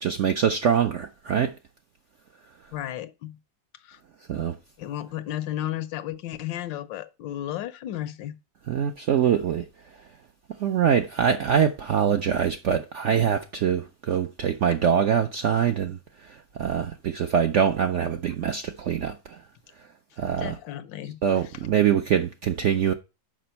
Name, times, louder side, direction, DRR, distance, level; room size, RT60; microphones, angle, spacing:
voice 1, 0.0-1.5 4.3-4.5 8.7-9.6 10.6-16.0 16.6-19.1 20.2-20.5 21.2-22.9, right 8 dB, 80° right, 0.6 m, -23 dB
voice 2, 2.7-3.4 3.8-4.0 4.8-8.4 20.4-21.7, left 12 dB, 90° left, 1.4 m, -34 dB
6.1 x 5.1 x 5.6 m
omnidirectional pair, 1.9 m